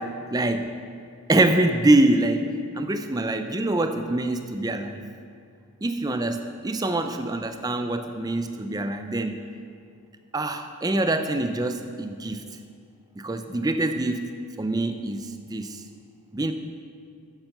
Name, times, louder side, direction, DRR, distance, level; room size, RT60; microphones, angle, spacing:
voice 1, 0.3-0.7 1.3-2.5 2.7-5.0 5.8-9.4 10.3-12.4 13.2-14.3 14.6-15.8 16.3-16.5, right 2 dB, 15° right, 7 dB, 0.5 m, -24 dB
9.0 x 7.3 x 6.7 m, 2.3 s
head